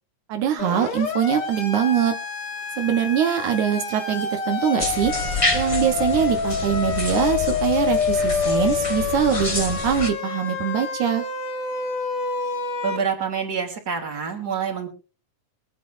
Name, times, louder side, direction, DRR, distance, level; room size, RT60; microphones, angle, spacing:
voice 1, 0.3-2.2 2.8-5.1 5.5-11.3, right 9 dB, 85° right, 5 dB, 2.6 m, -23 dB
Siren, 0.6-13.0, left 5 dB, 55° left, 2.3 m, -27 dB
sound 1, 4.8-10.1, left 2 dB, 15° left, 1.3 m, -28 dB
voice 2, 12.8-14.9, right 6 dB, 35° right, 2 dB, 3.2 m, -27 dB
24.0 x 9.3 x 2.6 m, 0.33 s
omnidirectional pair, 3.3 m